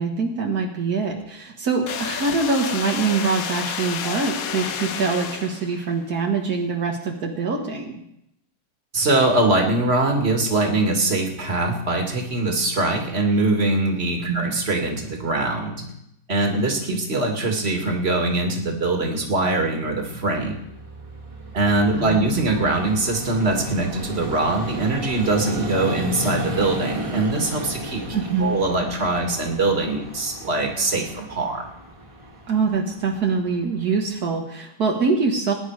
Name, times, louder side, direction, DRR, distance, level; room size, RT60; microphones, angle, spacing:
voice 1, 0.0-8.0 14.3-14.4 22.0-22.3 28.1-28.6 32.5-35.5, right 4 dB, 75° right, 1 dB, 2.0 m, -24 dB
sound 1, 1.9-5.9, left 7 dB, 65° left, 1.3 m, -30 dB
voice 2, 8.9-15.9 16.3-20.6 21.5-28.0 28.4-31.6, right 2 dB, 40° right, 2 dB, 2.5 m, -22 dB
Vehicle, 19.8-34.2, right 1 dB, 20° right, 1.9 m, -34 dB
20.5 x 10.5 x 4.9 m, 0.78 s
omnidirectional pair, 1.7 m